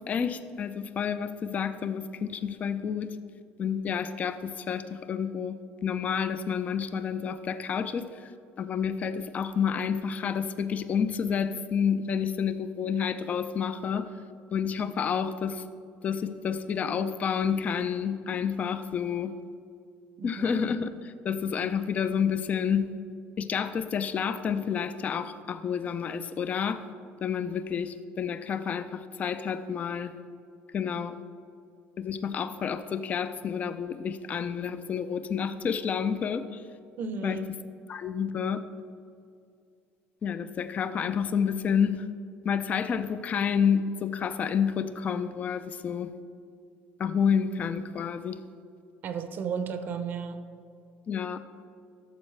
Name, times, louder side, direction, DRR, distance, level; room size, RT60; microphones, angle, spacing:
voice 1, 0.1-3.2 3.6-8.3 8.6-14.1 14.5-15.6 16.0-19.3 20.2-22.9 23.4-26.8 27.2-30.1 30.7-31.2 32.0-36.6 37.2-37.6 37.9-38.6 40.2-42.1 42.4-46.1 47.0-48.4 51.1-51.4, left 7 dB, 35° left, 0.4 m, -29 dB
voice 2, 37.0-37.4 49.0-50.4, right 6 dB, 45° right, 0.6 m, -33 dB
13.0 x 7.1 x 3.2 m
cardioid pair, 130°, 4 cm